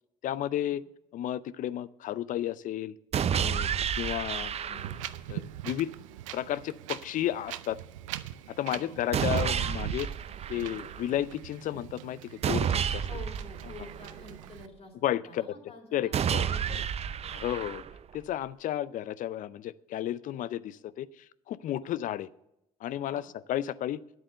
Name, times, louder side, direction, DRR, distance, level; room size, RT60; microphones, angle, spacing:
voice 1, 0.2-0.8 1.1-2.9 3.4-3.7 4.0-4.8 5.3-5.9 6.3-7.8 8.5-10.1 10.5-13.1 15.0-15.4 15.9-16.5 17.3-17.8 18.1-21.1 21.5-22.3 22.8-24.0, left 12 dB, 55° left, 19 dB, 0.5 m, -32 dB
sound 1, 3.1-5.2 9.1-11.1 12.4-14.4 16.1-18.1, right 8 dB, 40° right, 0.6 m, -30 dB
Wind, 4.8-14.7, right 13 dB, 85° right, 0.4 m, -42 dB
voice 2, 8.7-9.0 13.1-14.9 15.2-17.4 21.8-21.9 23.1-23.2, left 2 dB, 40° left, 3 dB, 3.5 m, -49 dB
9.4 x 8.5 x 6.7 m, 0.84 s
hypercardioid pair, 60°, 16 cm